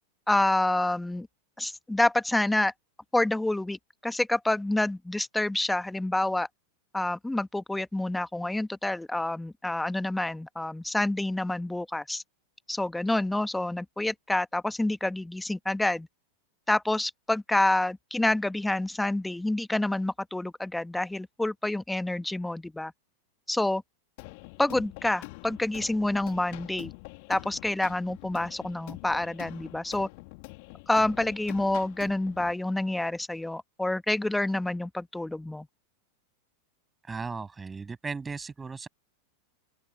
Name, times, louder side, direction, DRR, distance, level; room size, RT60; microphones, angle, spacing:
voice 1, 0.3-1.3 1.6-2.7 3.1-6.5 6.9-12.2 12.7-16.1 16.7-22.9 23.5-23.8 24.6-26.9 27.3-30.1 30.9-35.7, left 1 dB, 5° left, 1.3 m, -28 dB
sound 1, 24.2-32.5, left 29 dB, 45° left, 3.0 m, -45 dB
voice 2, 37.0-38.9, right 4 dB, 15° right, 7.9 m, -36 dB
open air
figure-of-eight pair, 90°, 0 cm